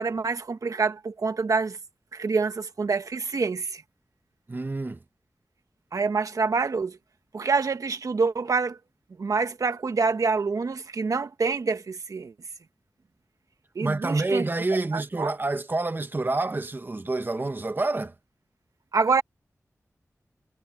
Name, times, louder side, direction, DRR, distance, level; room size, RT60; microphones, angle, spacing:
voice 1, 0.0-1.8 2.1-3.8 5.9-7.0 7.3-8.8 9.2-12.3 13.7-14.5 14.9-15.3 18.9-19.2, right 4 dB, 80° right, 1.4 m, -26 dB
voice 2, 4.5-5.0 13.8-18.1, right 2 dB, 35° right, 1.4 m, -28 dB
wide cardioid pair, 90°, 6 cm